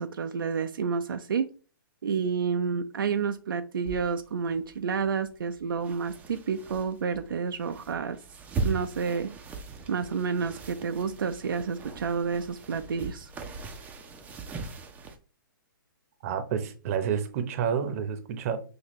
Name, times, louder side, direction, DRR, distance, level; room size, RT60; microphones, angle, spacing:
voice 1, 0.0-1.5 2.0-8.2 8.6-9.4 9.9-13.3, right 6 dB, 80° right, 0.5 m, -30 dB
sound 1, 3.8-15.2, right 3 dB, 15° right, 0.6 m, -39 dB
voice 2, 16.2-18.6, right 7 dB, 40° right, 0.8 m, -29 dB
5.9 x 2.7 x 3.1 m
hypercardioid pair, 135°, 11 cm